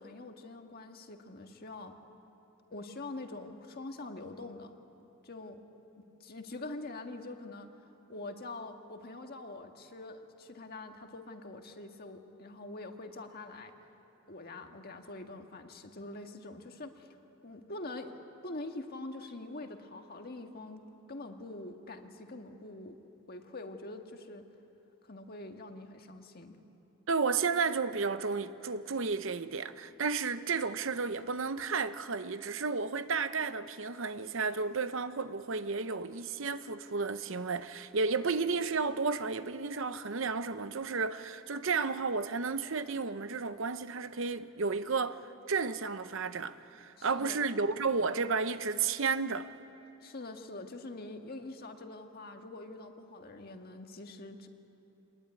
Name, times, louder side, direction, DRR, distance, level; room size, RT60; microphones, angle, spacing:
voice 1, 0.0-1.9 2.7-4.7 5.2-5.6 6.2-7.7 8.1-13.7 14.3-17.2 17.4-18.1 18.4-23.0 23.3-24.4 25.1-26.6 47.0-47.4 50.0-54.5, left 2 dB, 45° left, 1.7 m, -44 dB
voice 2, 27.1-45.2 45.5-49.5, right 4 dB, 65° right, 0.8 m, -32 dB
25.5 x 20.5 x 9.7 m
head